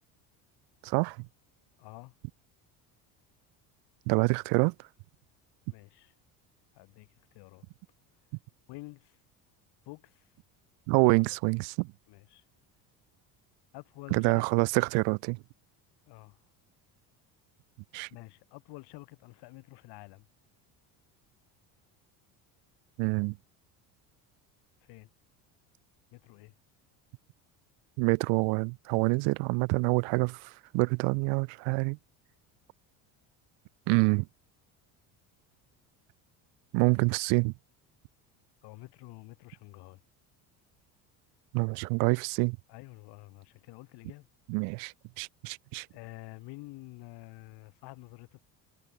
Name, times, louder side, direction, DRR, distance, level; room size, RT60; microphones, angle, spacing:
voice 1, 0.8-1.3 4.1-4.7 10.9-11.9 14.1-15.4 17.9-18.1 23.0-23.4 28.0-32.0 33.9-34.3 36.7-37.5 41.5-42.6 44.5-45.9, right 34 dB, 75° right, 0.6 m, -27 dB
voice 2, 1.8-2.1 5.7-6.1 6.7-7.7 8.7-9.2 9.8-10.3 11.1-11.4 12.1-12.4 13.7-14.5 16.1-16.4 18.1-20.3 24.8-25.1 26.1-26.5 38.6-40.0 42.7-44.3 45.9-48.5, left 22 dB, 70° left, 3.1 m, -49 dB
supercardioid pair, 100°, 41 cm